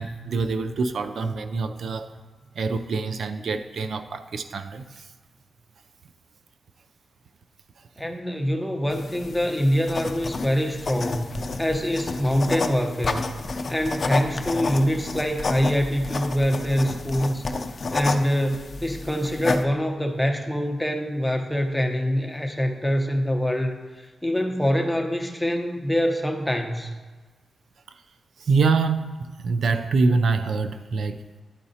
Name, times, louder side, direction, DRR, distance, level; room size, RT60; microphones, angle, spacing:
voice 1, 0.0-2.2 2.5-5.1 27.9-28.0 28.4-31.2, right 4 dB, 70° right, 9 dB, 0.3 m, -25 dB
voice 2, 8.0-13.3 13.7-17.4 17.9-26.9, equal, 5° left, 3 dB, 0.8 m, -25 dB
sound 1, 8.9-19.6, left 3 dB, 50° left, 0.5 m, -30 dB
11.5 x 4.8 x 2.8 m, 1.3 s
cardioid pair, 75°, 0 cm